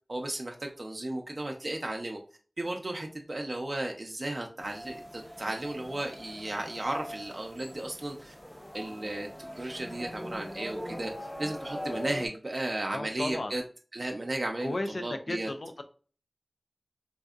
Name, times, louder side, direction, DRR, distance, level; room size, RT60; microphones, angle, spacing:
voice 1, 0.1-2.2 2.6-8.3 8.7-13.6 13.9-15.5, right 1 dB, 55° right, 2 dB, 0.5 m, -35 dB
sound 1, 4.6-12.3, equal, 20° left, 0.8 m, -41 dB
voice 2, 12.9-13.5 14.6-15.8, left 2 dB, 75° left, 7 dB, 0.5 m, -34 dB
4.2 x 2.6 x 2.3 m, 0.38 s
wide cardioid pair, 40°, 0 cm